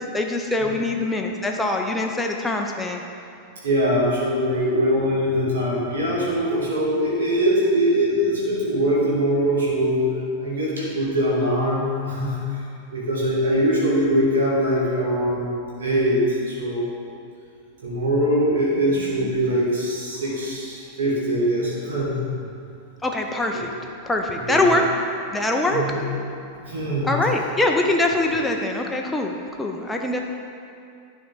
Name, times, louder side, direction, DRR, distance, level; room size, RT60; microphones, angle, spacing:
voice 1, 0.1-3.0 23.0-23.7 24.1-24.8 25.3-25.8 27.0-30.2, left 2 dB, 10° left, 1 dB, 0.5 m, -23 dB
voice 2, 3.6-10.1 10.4-12.6 12.9-16.9 17.8-22.2 23.5-23.6 24.3-24.7 25.7-26.0 26.6-27.1, equal, 65° right, -7 dB, 1.7 m, -22 dB
10.0 x 4.4 x 3.9 m, 2.5 s
figure-of-eight pair, 90°, 0 cm